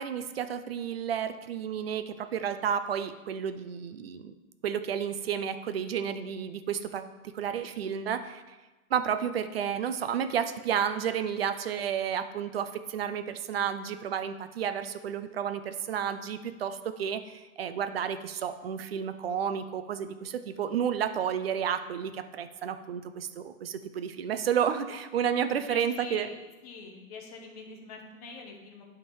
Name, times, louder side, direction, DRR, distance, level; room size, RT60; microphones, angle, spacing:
voice 1, 0.0-4.3 4.6-7.0 7.3-8.6 8.9-26.3, right 8 dB, 45° right, 10 dB, 0.4 m, -31 dB
voice 2, 25.7-26.3 26.6-28.8, left 4 dB, 25° left, 1 dB, 0.9 m, -45 dB
10.5 x 3.7 x 4.6 m, 1.2 s
hypercardioid pair, 170°, 43 cm